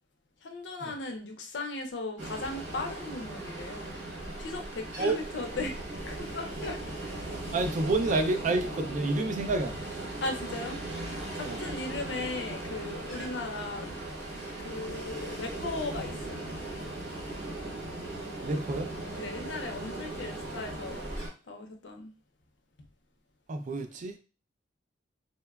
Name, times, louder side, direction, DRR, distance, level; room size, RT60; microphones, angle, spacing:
voice 1, 0.4-3.9 4.4-7.2 9.3-9.4 10.2-10.8 11.3-14.0 14.6-16.5 19.2-21.1 21.5-22.1, left 2 dB, 70° left, 0.5 m, -37 dB
Ocean, 2.2-21.3, right 2 dB, 75° right, 1.3 m, -38 dB
voice 2, 7.5-9.8 11.4-11.6 18.4-18.9 23.5-24.2, right 2 dB, 45° right, 0.3 m, -29 dB
2.8 x 2.2 x 2.2 m
head